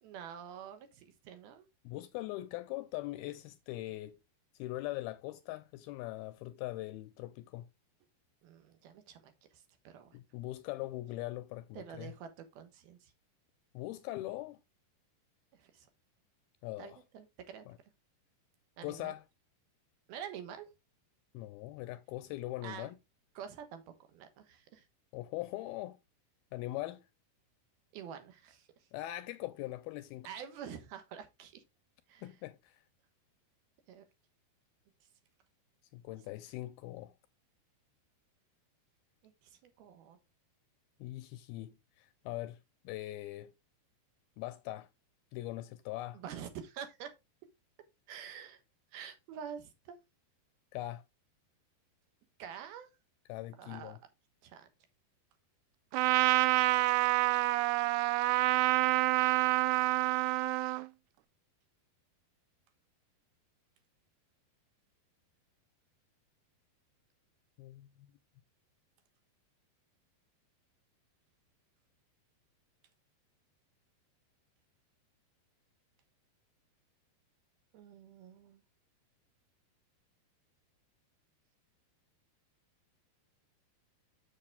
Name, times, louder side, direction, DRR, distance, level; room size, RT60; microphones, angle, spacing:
voice 1, 0.0-1.7 8.4-10.2 11.8-13.1 15.6-15.9 16.8-17.6 18.8-19.1 20.1-20.7 22.6-22.9 23.4-23.8 24.1-24.8 27.9-28.7 30.2-31.6 32.1-32.2 33.9-34.0 39.2-40.2 46.1-47.1 48.1-48.6 48.9-50.0 52.4-52.9 53.6-54.0 54.4-54.7 77.7-78.6, right 8 dB, 70° right, 3.0 m, -47 dB
voice 2, 1.8-4.2 4.6-7.7 10.1-12.1 13.7-14.6 16.6-17.0 17.7-17.8 18.8-19.2 21.3-23.0 25.1-26.0 26.5-27.0 28.9-30.3 32.2-32.8 35.9-37.1 41.0-42.6 42.8-43.5 44.4-44.9 45.3-46.2 50.7-51.0 53.3-54.0 67.6-68.1, left 16 dB, 80° left, 2.3 m, -41 dB
Trumpet, 55.9-60.9, right 19 dB, 90° right, 2.7 m, -27 dB
7.6 x 7.2 x 3.5 m
omnidirectional pair, 4.7 m